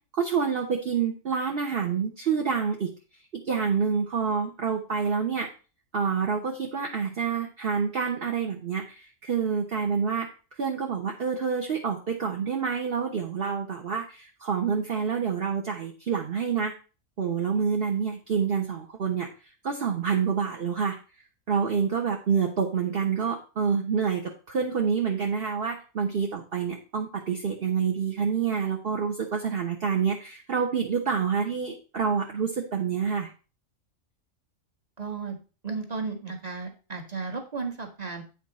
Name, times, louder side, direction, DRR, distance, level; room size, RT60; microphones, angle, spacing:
voice 1, 0.1-2.9 3.3-5.5 5.9-10.3 10.6-16.7 17.2-19.3 19.6-21.0 21.5-33.3, right 6 dB, 45° right, 1 dB, 1.3 m, -27 dB
voice 2, 35.0-35.4 35.6-38.2, right 4 dB, 30° right, 3 dB, 1.8 m, -34 dB
9.1 x 6.0 x 4.2 m, 0.33 s
omnidirectional pair, 1.5 m